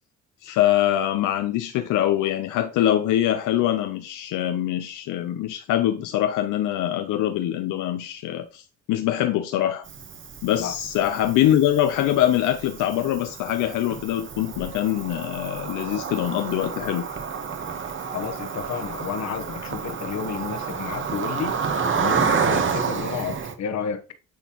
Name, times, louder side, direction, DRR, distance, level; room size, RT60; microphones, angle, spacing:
voice 1, 0.4-9.9 10.4-17.1, left 12 dB, 90° left, 0.6 m, -23 dB
Cricket, 9.9-23.5, right 6 dB, 40° right, 1.1 m, -30 dB
voice 2, 18.1-21.6 22.0-24.0, left 7 dB, 65° left, 1.1 m, -31 dB
10.5 x 4.1 x 3.0 m
cardioid pair, 90°, 30 cm